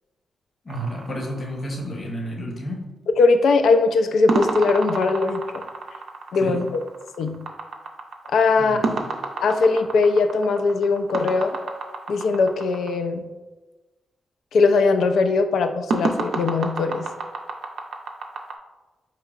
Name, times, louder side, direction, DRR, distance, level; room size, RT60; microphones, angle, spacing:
voice 1, 0.6-2.9 6.4-6.6 8.6-9.1, equal, 50° left, 0 dB, 0.8 m, -31 dB
sound 1, 0.7-2.1 4.3-12.9 15.9-18.5, right 3 dB, 75° right, 0.4 m, -29 dB
voice 2, 3.2-5.6 6.3-6.7 7.2-7.4 8.3-8.8 9.4-11.6 12.1-13.2 14.5-17.1, left 4 dB, 80° left, 7 dB, 0.3 m, -20 dB
4.6 x 3.0 x 2.3 m, 1.2 s
cardioid pair, 65°, 0 cm